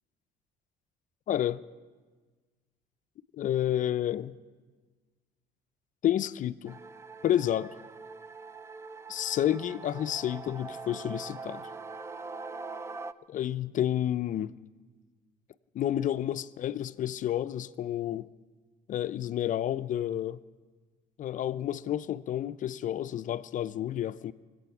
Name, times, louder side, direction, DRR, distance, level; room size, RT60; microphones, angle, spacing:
voice 1, 1.3-1.6 3.4-4.4 6.0-6.8 7.2-7.7 9.1-11.7 13.3-14.5 15.7-18.3 18.9-20.4 21.2-24.3, left 11 dB, 50° left, 0.4 m, -30 dB
sound 1, 6.7-13.1, right 4 dB, 15° right, 0.4 m, -43 dB
24.5 x 8.5 x 5.9 m
cardioid pair, 110°, 17 cm